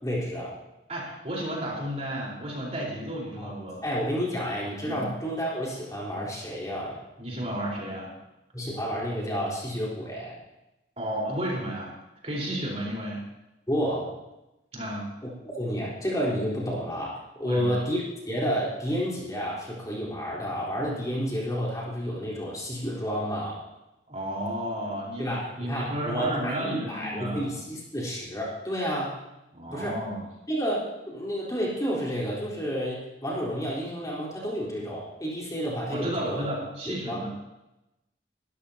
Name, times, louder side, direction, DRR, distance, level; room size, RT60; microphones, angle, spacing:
voice 1, 0.0-0.6 3.4-3.5 3.8-7.0 8.5-10.3 13.7-14.1 15.2-15.3 15.5-23.6 25.2-29.2 29.7-30.0 30.5-36.5 36.9-37.3, equal, 20° left, -6 dB, 4.1 m, -30 dB
voice 2, 0.9-3.8 4.9-5.0 7.2-8.1 11.0-11.9 12.2-13.2 14.7-15.1 17.4-17.8 24.1-25.3 25.6-27.4 29.5-30.2 35.9-37.3, right 1 dB, 35° right, -3 dB, 4.3 m, -32 dB
22.5 x 13.5 x 2.9 m, 0.95 s
head